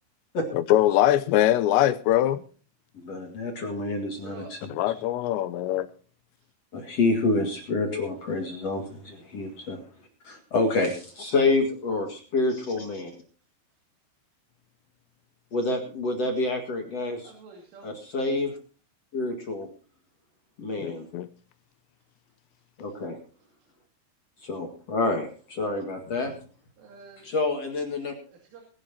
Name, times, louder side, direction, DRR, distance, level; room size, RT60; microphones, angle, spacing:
voice 1, 0.5-2.4 4.7-5.9 20.8-21.3, left 13 dB, 80° left, 2.8 m, -22 dB
voice 2, 2.9-4.6 6.7-9.8 10.2-13.1 15.5-17.3 17.8-18.5 19.1-19.7 20.6-21.0 22.8-23.2 24.4-26.3 27.2-28.1, left 2 dB, 50° left, 2.1 m, -28 dB
voice 3, 3.8-4.7 6.4-6.5 17.2-17.9 26.8-27.3 28.3-28.6, right 4 dB, 90° right, 5.2 m, -49 dB
22.5 x 11.0 x 2.8 m
omnidirectional pair, 5.5 m